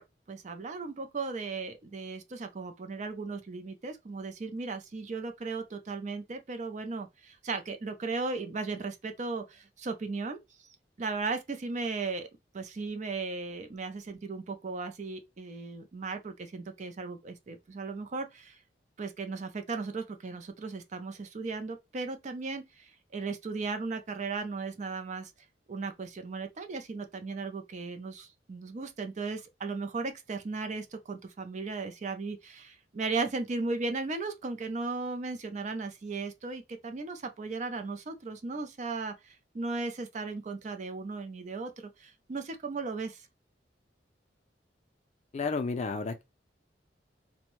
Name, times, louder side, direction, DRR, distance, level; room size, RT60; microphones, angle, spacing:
voice 1, 0.0-12.3 12.5-18.6 19.0-25.3 25.7-41.7 42.0-43.3, right 3 dB, 40° right, 0.4 m, -36 dB
voice 2, 45.3-46.2, left 4 dB, 40° left, 0.4 m, -31 dB
2.6 x 2.1 x 2.9 m
head